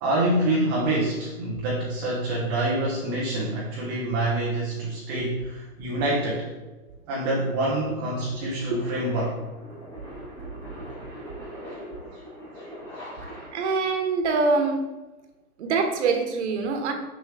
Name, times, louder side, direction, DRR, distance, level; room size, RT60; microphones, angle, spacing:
voice 1, 0.0-6.5 7.1-9.4 12.1-12.2 12.6-12.7 13.0-13.1, right 1 dB, 15° right, -4 dB, 0.6 m, -26 dB
sound 1, 6.4-13.9, equal, 5° left, 1.8 m, -42 dB
voice 2, 8.4-8.8 13.5-14.9 15.6-16.9, right 4 dB, 45° right, 4 dB, 1.2 m, -24 dB
6.6 x 6.1 x 3.3 m, 1.2 s
hypercardioid pair, 150°, 45 cm